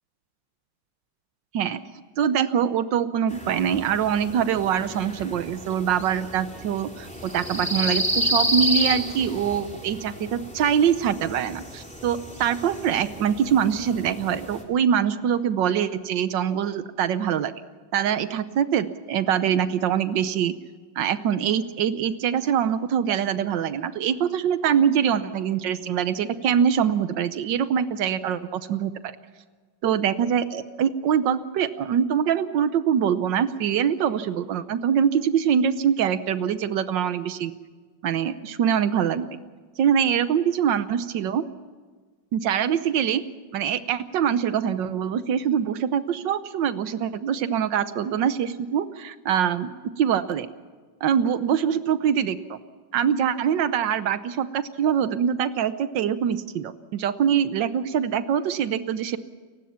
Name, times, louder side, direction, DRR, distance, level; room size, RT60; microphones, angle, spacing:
voice 1, 2.2-17.5 17.9-20.5 21.0-29.1 29.8-37.5 38.0-39.3 39.8-41.4 42.3-43.2 43.5-50.5 51.0-52.6 52.9-59.2, right 8 dB, 90° right, 12 dB, 1.6 m, -24 dB
sound 1, 3.3-14.6, equal, 5° left, 2.9 m, -31 dB
29.0 x 16.0 x 5.8 m, 1.5 s
omnidirectional pair, 1.9 m